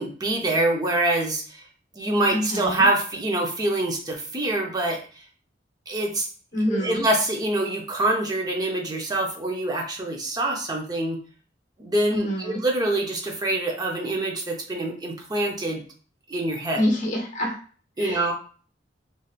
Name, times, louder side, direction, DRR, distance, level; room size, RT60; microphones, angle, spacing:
voice 1, 0.0-1.6 1.9-5.0 5.9-6.3 6.7-11.2 11.8-15.8 16.3-16.8 18.0-18.3, right 2 dB, 20° right, 0 dB, 0.6 m, -25 dB
voice 2, 2.3-2.9 6.5-7.0 12.1-12.6 16.7-17.6 18.0-18.2, equal, 45° left, 2 dB, 0.9 m, -26 dB
3.1 x 2.9 x 2.4 m, 0.40 s
head